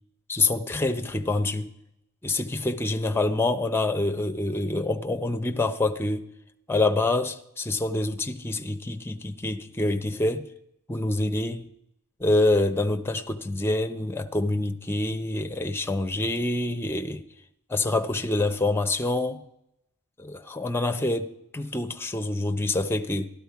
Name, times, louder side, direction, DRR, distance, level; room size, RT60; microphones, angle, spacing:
voice 1, 0.3-1.7 2.2-6.3 6.7-10.5 10.9-11.7 12.2-17.3 17.7-19.4 20.2-23.3, left 2 dB, 10° left, 0.6 m, -26 dB
13.0 x 11.5 x 4.7 m
head